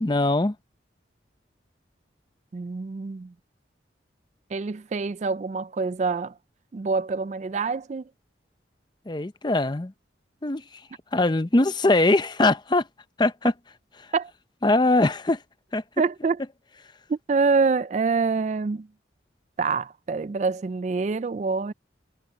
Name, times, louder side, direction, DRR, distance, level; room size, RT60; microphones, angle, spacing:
voice 1, 0.0-0.5 9.1-9.9 10.4-10.6 11.1-12.8 13.2-13.5 14.6-15.4 15.7-15.8, left 2 dB, 25° left, 0.6 m, -21 dB
voice 2, 2.5-3.3 4.5-6.3 6.7-8.0 14.1-14.3 16.0-16.4 17.1-18.9 19.6-21.7, right 4 dB, 40° right, 0.3 m, -26 dB
head